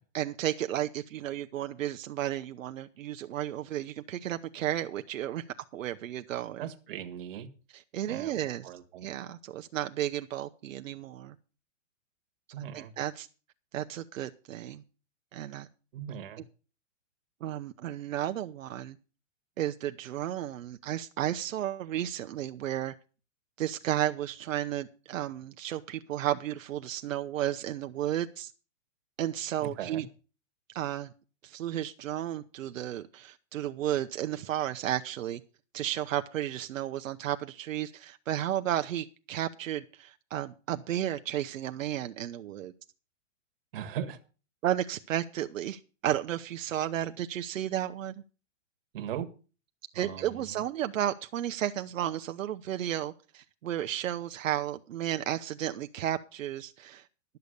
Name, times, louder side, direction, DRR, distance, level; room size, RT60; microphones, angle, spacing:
voice 1, 0.1-5.4 5.7-6.7 7.7-8.7 9.0-11.3 12.7-13.3 13.7-14.8 15.3-15.7 17.4-19.0 19.6-22.9 23.6-28.5 29.2-30.1 30.7-31.1 31.4-35.4 35.7-42.7 44.6-48.2 49.9-57.1, right 12 dB, 80° right, 8 dB, 0.8 m, -33 dB
voice 2, 6.6-7.5 8.1-8.3 8.6-9.1 12.5-12.9 15.9-16.4 29.6-30.1 43.7-44.2 48.9-49.3 49.9-50.6, right 9 dB, 45° right, 7 dB, 1.5 m, -38 dB
12.0 x 6.9 x 6.6 m, 0.36 s
hypercardioid pair, 160°, 38 cm